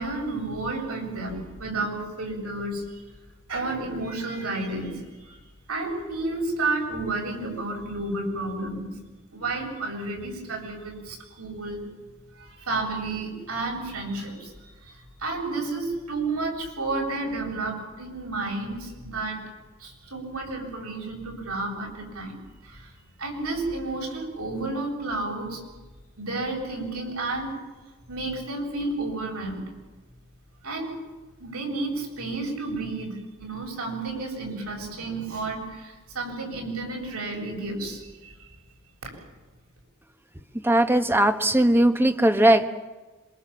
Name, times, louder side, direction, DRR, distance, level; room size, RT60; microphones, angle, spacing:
voice 1, 0.0-3.0 3.5-5.4 5.7-8.9 9.3-11.8 12.4-19.4 19.8-22.9 23.2-25.6 26.2-27.5 28.1-29.7 30.6-30.9 31.4-38.5, right 2 dB, 85° right, 1 dB, 8.0 m, -31 dB
voice 2, 40.6-42.7, right 1 dB, 10° right, 7 dB, 1.2 m, -19 dB
26.5 x 24.0 x 7.4 m, 1.2 s
head